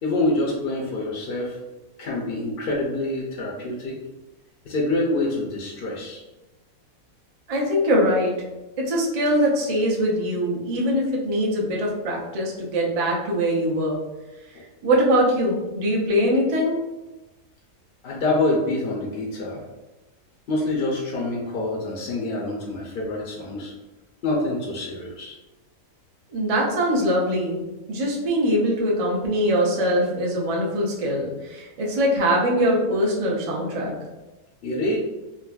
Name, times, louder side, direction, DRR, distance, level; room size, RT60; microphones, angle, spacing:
voice 1, 0.0-1.6 2.0-4.0 4.6-6.2 14.5-14.6 18.0-19.6 20.5-23.7 24.2-25.4 34.6-35.0, left 2 dB, 70° left, -2 dB, 0.5 m, -26 dB
voice 2, 7.5-8.3 8.8-14.0 14.8-16.8 26.3-27.6 27.9-33.9, equal, 65° right, -3 dB, 0.3 m, -22 dB
3.8 x 2.1 x 2.3 m, 1.1 s
omnidirectional pair, 1.6 m